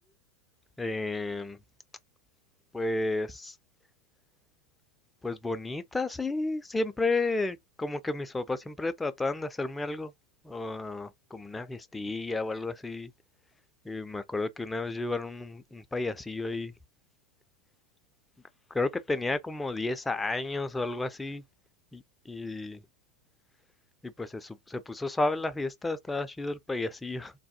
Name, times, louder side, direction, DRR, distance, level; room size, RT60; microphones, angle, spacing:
voice 1, 0.8-1.6 2.7-3.5 5.2-10.1 10.4-13.1 13.9-16.7 18.7-21.4 21.9-22.8 24.0-27.3, left 2 dB, 10° left, 0.3 m, -32 dB
3.3 x 2.2 x 2.7 m
figure-of-eight pair, 90°, 0 cm